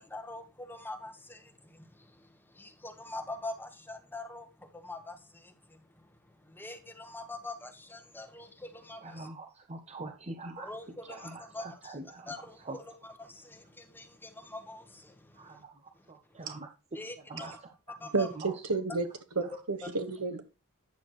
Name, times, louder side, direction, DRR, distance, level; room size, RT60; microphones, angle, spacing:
voice 1, 0.0-9.3 10.6-12.0 12.3-15.6 16.9-17.6 18.0-18.3, left 2 dB, 10° left, 1.2 m, -44 dB
voice 2, 9.0-12.3 12.6-12.8 15.3-16.7 17.3-17.7 18.0-18.1 18.4-18.5, right 2 dB, 30° right, 0.8 m, -44 dB
voice 3, 18.1-19.1 19.3-20.4, right 3 dB, 80° right, 1.4 m, -31 dB
9.1 x 7.1 x 3.1 m
head